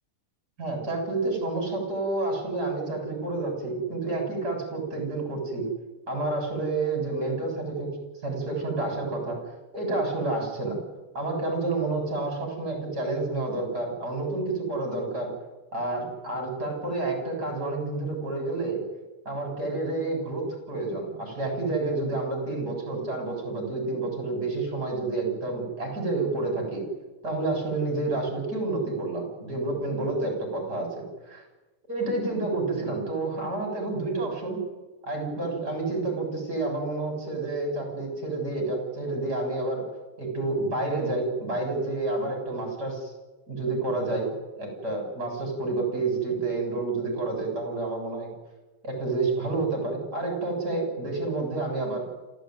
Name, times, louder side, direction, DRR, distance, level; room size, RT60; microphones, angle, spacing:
voice 1, 0.6-5.6 6.1-7.9 8.2-9.4 9.7-10.8 11.1-15.3 15.7-18.8 19.2-26.8 27.2-31.5 31.9-34.6 35.0-39.9 40.2-43.1 43.5-44.3 44.6-48.3 48.8-52.1, right 2 dB, 20° right, 2 dB, 8.1 m, -29 dB
27.0 x 15.0 x 9.5 m, 1.2 s
omnidirectional pair, 4.8 m